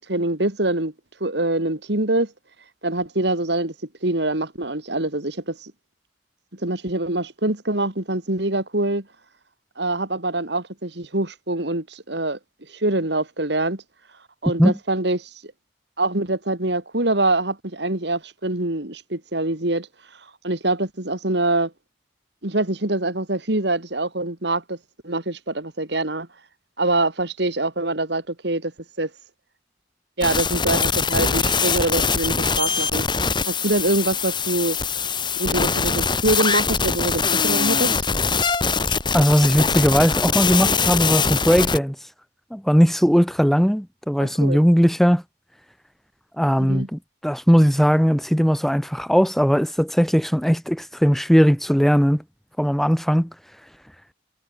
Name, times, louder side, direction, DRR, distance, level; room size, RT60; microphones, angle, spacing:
voice 1, 0.1-0.9 1.2-2.3 2.8-3.7 4.0-5.7 6.5-9.0 9.8-12.4 12.7-13.8 14.4-15.5 16.0-19.9 20.4-21.7 22.4-24.8 25.0-26.3 26.8-28.7 29.0-29.1 30.2-33.0 33.5-34.8 35.4-37.9 44.2-44.6 46.6-46.9, right 2 dB, 60° right, 2.6 m, -24 dB
sound 1, 30.2-41.8, left 5 dB, 25° left, 3.0 m, -22 dB
voice 2, 39.1-41.9 42.5-45.2 46.4-52.2 52.6-53.3, equal, ahead, 1.6 m, -18 dB
head